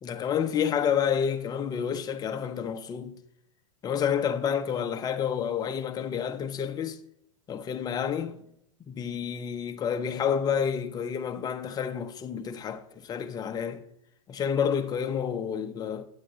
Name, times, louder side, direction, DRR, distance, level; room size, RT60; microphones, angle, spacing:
voice 1, 0.0-3.1 3.8-7.0 7.5-8.5 8.9-13.8 14.3-16.0, left 8 dB, 20° left, 0.8 m, -29 dB
9.5 x 7.6 x 3.9 m
hypercardioid pair, 110°, 17 cm